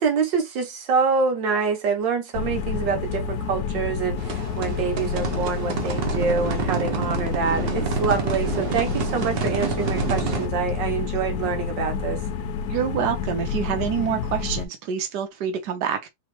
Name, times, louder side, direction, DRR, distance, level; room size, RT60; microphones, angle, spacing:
voice 1, 0.0-12.2, right 5 dB, 90° right, 1.7 m, -26 dB
sound 1, 2.3-14.7, left 6 dB, 70° left, 1.0 m, -29 dB
sound 2, 4.2-10.5, right 7 dB, 55° right, 0.6 m, -29 dB
voice 2, 12.7-16.1, right 8 dB, 70° right, 1.4 m, -27 dB
3.6 x 3.1 x 3.0 m
omnidirectional pair, 1.9 m